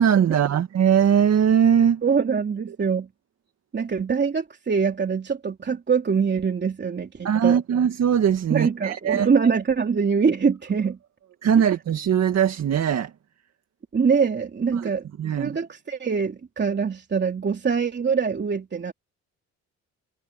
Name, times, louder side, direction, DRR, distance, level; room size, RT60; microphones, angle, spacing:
voice 1, 0.0-2.0 7.2-9.3 11.4-13.1 14.7-14.9 15.2-15.6, right 8 dB, 60° right, 2.0 m, -20 dB
voice 2, 2.0-3.1 3.7-7.6 8.5-11.0 13.9-15.1 15.3-18.9, right 6 dB, 35° right, 3.1 m, -24 dB
cardioid pair, 90°, 30 cm